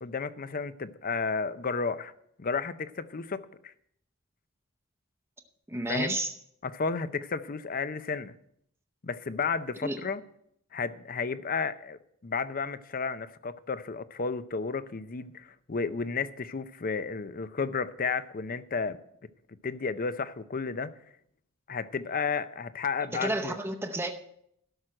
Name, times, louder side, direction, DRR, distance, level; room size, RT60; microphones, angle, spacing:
voice 1, 0.0-2.1 2.4-3.7 5.9-6.2 6.6-8.4 9.0-10.2 10.7-19.0 19.6-20.9 21.7-23.6, left 5 dB, 40° left, 0.6 m, -32 dB
voice 2, 5.7-6.3 9.8-10.0 23.1-24.1, right 1 dB, 10° right, 0.8 m, -31 dB
12.5 x 6.2 x 7.7 m
head